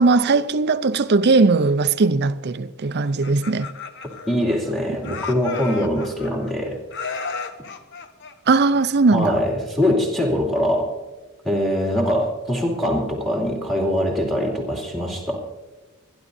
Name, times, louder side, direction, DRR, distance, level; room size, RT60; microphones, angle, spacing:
voice 1, 0.0-3.7 5.0-5.2 8.5-9.4, right 3 dB, 45° right, 0.5 m, -19 dB
Laughter, 3.0-4.7 5.0-6.5 6.9-9.2, left 5 dB, 55° left, 1.1 m, -34 dB
voice 2, 4.3-6.8 9.1-10.9 11.4-15.4, equal, ahead, 2.6 m, -22 dB
29.0 x 11.0 x 2.7 m
head